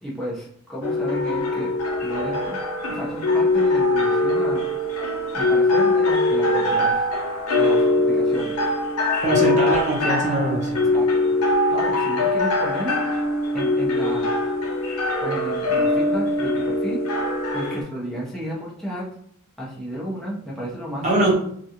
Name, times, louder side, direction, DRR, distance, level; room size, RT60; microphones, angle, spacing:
voice 1, 0.0-1.7 2.0-2.6 2.9-4.7 5.3-7.1 7.6-8.6 10.9-11.4 11.7-12.9 13.5-14.3 15.2-17.0 17.5-19.1 19.6-21.3, equal, ahead, -6 dB, 0.8 m, -32 dB
sound 1, 0.8-17.8, left 2 dB, 70° left, 0.7 m, -22 dB
voice 2, 9.2-10.9 21.0-21.3, right 1 dB, 35° right, -3 dB, 0.8 m, -22 dB
3.0 x 2.4 x 2.7 m, 0.65 s
head